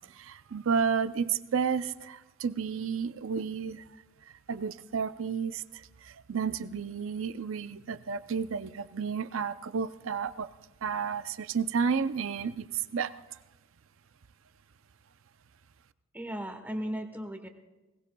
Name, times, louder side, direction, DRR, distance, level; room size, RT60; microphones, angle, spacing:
voice 1, 0.1-3.8 4.5-5.6 6.0-10.5 10.8-13.1, right 6 dB, 65° right, 13 dB, 0.5 m, -31 dB
voice 2, 16.1-17.5, equal, 10° right, 5 dB, 1.1 m, -36 dB
20.5 x 18.5 x 2.3 m, 1.1 s
head